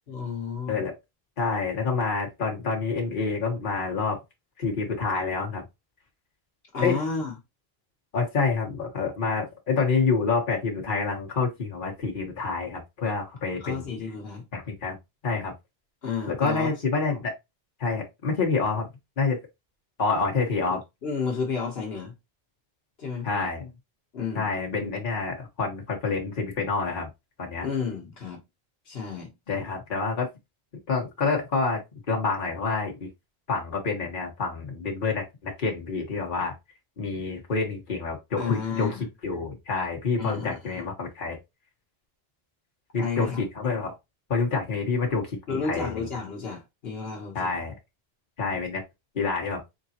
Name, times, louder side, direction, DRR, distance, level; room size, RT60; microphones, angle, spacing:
voice 1, 0.1-0.8 6.7-7.3 13.6-14.4 16.0-16.7 20.7-22.1 23.0-23.3 24.1-24.5 27.6-28.4 28.8-29.3 38.4-39.1 40.2-40.8 43.0-43.4 45.5-47.5, left 5 dB, 75° left, 1.3 m, -31 dB
voice 2, 1.4-4.2 4.6-5.6 6.8-7.0 8.1-13.8 14.5-15.0 15.2-15.5 16.3-17.3 17.8-18.9 19.2-19.4 20.0-20.8 23.2-23.7 24.3-27.1 27.4-27.7 29.5-30.3 30.9-31.8 32.1-33.1 33.5-36.5 37.0-41.4 42.9-44.0 44.3-46.0 47.3-47.7 48.4-48.8 49.1-49.6, left 4 dB, 55° left, 1.4 m, -27 dB
3.9 x 3.7 x 2.8 m
omnidirectional pair, 1.0 m